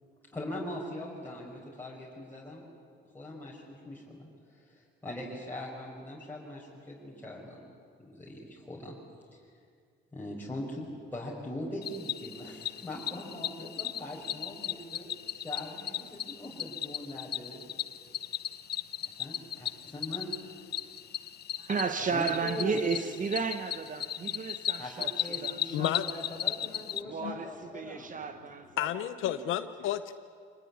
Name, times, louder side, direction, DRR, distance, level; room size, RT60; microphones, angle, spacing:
voice 1, 0.3-2.6 3.1-4.2 5.0-7.6 8.0-8.9 10.1-17.6 19.2-20.3 22.0-22.8 24.8-28.2, left 1 dB, 10° left, 5.3 m, -41 dB
Cricket, 11.8-27.0, left 10 dB, 55° left, 0.7 m, -36 dB
voice 2, 21.6-25.9 27.0-29.0 29.4-29.6, right 5 dB, 40° right, 1.2 m, -34 dB
voice 3, 25.7-26.0 27.2-27.4 28.8-30.1, left 12 dB, 85° left, 0.8 m, -31 dB
26.0 x 19.0 x 9.7 m
cardioid pair, 90°, 20 cm